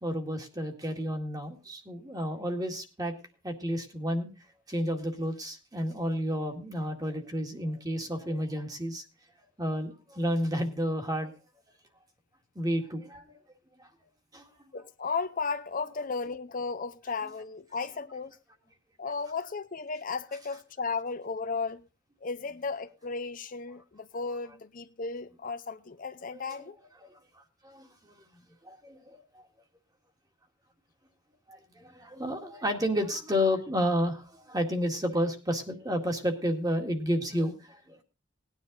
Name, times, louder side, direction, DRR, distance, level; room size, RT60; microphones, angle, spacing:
voice 1, 0.0-3.2 3.4-4.3 4.7-9.0 9.6-11.3 12.6-13.4 13.8-13.9 14.3-14.4 26.3-26.4 27.0-28.2 28.6-29.2 31.5-38.0, equal, 20° right, 2.0 m, -31 dB
voice 2, 14.7-18.4 19.0-21.8 22.2-26.8, left 4 dB, 45° left, 0.6 m, -35 dB
18.5 x 9.8 x 4.0 m
head